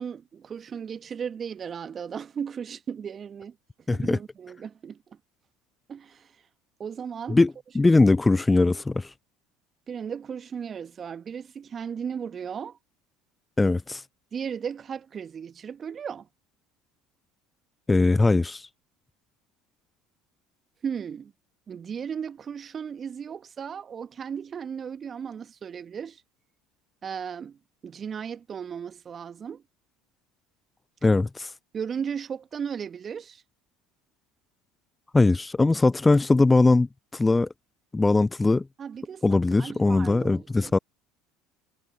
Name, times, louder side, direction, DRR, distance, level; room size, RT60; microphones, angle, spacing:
voice 1, 0.0-3.6 3.9-5.2 5.9-6.4 6.8-7.4 9.9-12.8 14.3-16.3 20.8-21.3 21.7-26.2 27.0-27.6 27.8-29.6 31.7-33.4 38.8-40.8, right 7 dB, 35° right, 1.6 m, -36 dB
voice 2, 3.9-4.2 7.3-9.1 13.6-14.0 17.9-18.7 31.0-31.5 35.1-36.9 37.1-37.5 37.9-38.6 39.2-40.8, left 3 dB, 15° left, 0.3 m, -21 dB
figure-of-eight pair, 65°, 0 cm